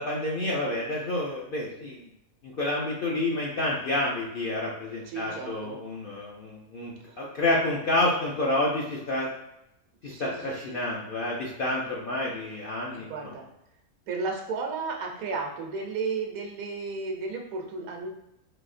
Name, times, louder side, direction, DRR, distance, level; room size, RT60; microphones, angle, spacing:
voice 1, 0.0-2.0 2.4-9.3 10.0-13.1, left 1 dB, 60° left, -4 dB, 0.5 m, -29 dB
voice 2, 5.0-5.8 7.0-7.3 10.1-10.6 12.9-13.4 14.1-18.1, right 4 dB, 80° right, 2 dB, 1.1 m, -34 dB
4.1 x 2.7 x 2.5 m, 0.85 s
omnidirectional pair, 1.5 m